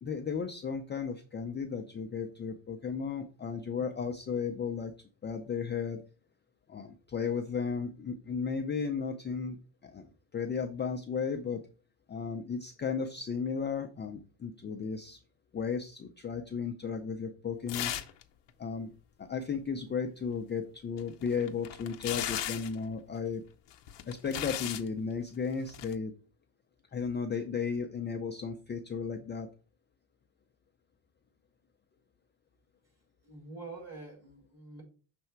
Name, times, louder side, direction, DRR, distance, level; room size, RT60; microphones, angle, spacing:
voice 1, 0.0-4.9 5.2-6.0 6.7-9.6 9.8-11.6 12.1-15.2 15.5-17.9 18.6-18.9 19.2-23.4 24.0-26.1 26.9-29.5, left 6 dB, 25° left, 4 dB, 0.4 m, -34 dB
sound 1, 17.7-18.2 18.5-18.6 21.0-22.8 23.7-24.9 25.7-25.9, left 11 dB, 60° left, 0.7 m, -36 dB
voice 2, 33.2-34.8, right 3 dB, 30° right, -1 dB, 3.6 m, -46 dB
6.5 x 3.4 x 4.5 m, 0.37 s
cardioid pair, 130°, 47 cm